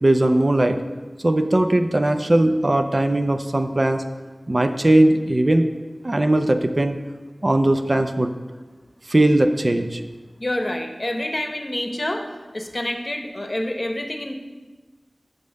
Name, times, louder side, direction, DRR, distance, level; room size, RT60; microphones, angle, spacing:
voice 1, 0.0-0.8 1.2-4.0 4.5-5.7 6.0-7.0 7.4-8.3 9.1-10.0, right 1 dB, 45° right, 7 dB, 0.5 m, -19 dB
voice 2, 10.4-12.2 12.5-14.3, left 1 dB, 35° left, 4 dB, 0.9 m, -27 dB
6.5 x 5.4 x 6.3 m, 1.3 s
wide cardioid pair, 55°, 0 cm